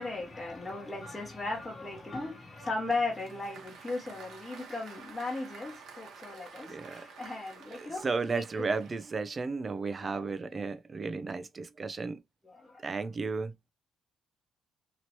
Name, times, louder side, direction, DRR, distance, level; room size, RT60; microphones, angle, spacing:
voice 1, 0.0-8.4 10.0-10.2 12.4-12.8, left 3 dB, 20° left, 1.2 m, -37 dB
Applause, 2.9-9.2, right 5 dB, 70° right, 1.0 m, -50 dB
voice 2, 6.7-7.0 7.7-12.2 12.8-13.5, right 4 dB, 35° right, 0.5 m, -34 dB
3.0 x 2.8 x 2.9 m
cardioid pair, 90°, 0 cm